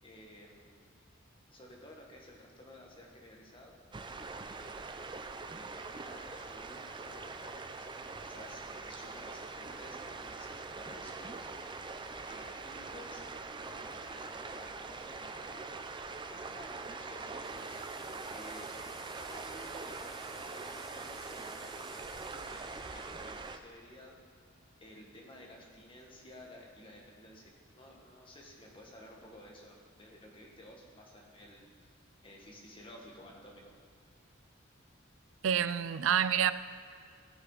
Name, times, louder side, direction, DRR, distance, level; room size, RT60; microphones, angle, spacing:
voice 1, 0.0-0.9 1.5-3.8 4.5-4.9 5.5-11.8 12.3-13.2 13.6-15.9 16.3-17.8 18.0-18.9 19.2-24.2 24.8-31.7 32.2-33.7, left 1 dB, 25° left, 1.7 m, -54 dB
sound 1, 3.9-23.6, right 3 dB, 25° right, 0.5 m, -43 dB
sound 2, 17.4-23.5, equal, ahead, 0.9 m, -56 dB
voice 2, 35.4-36.5, right 8 dB, 80° right, 0.4 m, -28 dB
17.5 x 6.1 x 4.9 m
head